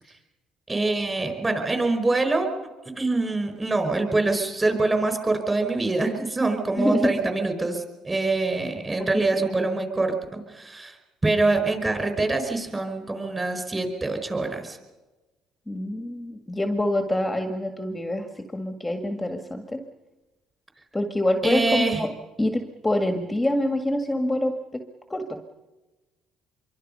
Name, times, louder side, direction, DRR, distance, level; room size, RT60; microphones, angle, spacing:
voice 1, 0.7-2.5 3.0-10.9 11.2-14.8 21.4-22.1, right 3 dB, 15° right, 6 dB, 5.0 m, -25 dB
voice 2, 6.8-7.1 9.0-9.5 15.7-19.8 20.9-22.1 22.4-24.8 25.1-25.4, left 1 dB, 10° left, 5 dB, 1.9 m, -26 dB
26.0 x 23.5 x 5.5 m, 1.1 s
cardioid pair, 105°, 0 cm